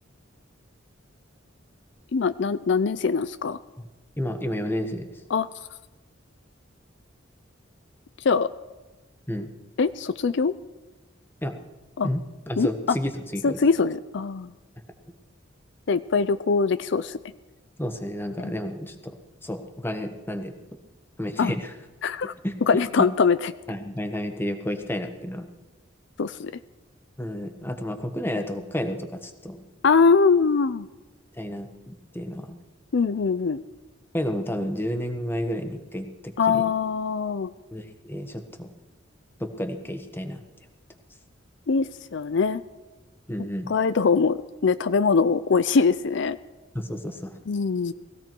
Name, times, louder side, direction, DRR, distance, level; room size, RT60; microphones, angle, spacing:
voice 1, 2.1-3.6 5.3-5.5 8.2-8.5 9.8-10.5 12.0-12.1 12.6-12.7 13.4-14.5 15.9-17.2 18.4-18.5 21.4-21.6 22.0-22.3 22.7-23.5 26.2-26.5 29.8-30.9 32.9-33.6 36.4-37.5 41.7-42.6 43.7-46.4 47.5-47.9, left 5 dB, 65° left, 13 dB, 0.5 m, -22 dB
voice 2, 4.2-5.1 9.3-9.5 11.4-11.5 12.0-13.6 17.8-19.2 19.4-20.5 21.2-21.7 22.4-23.1 23.7-25.5 27.2-29.6 31.3-32.6 34.1-36.7 37.7-38.7 39.4-40.4 43.3-43.7 46.7-47.4, equal, 10° left, 7 dB, 1.3 m, -31 dB
20.0 x 15.5 x 4.6 m, 1.2 s
head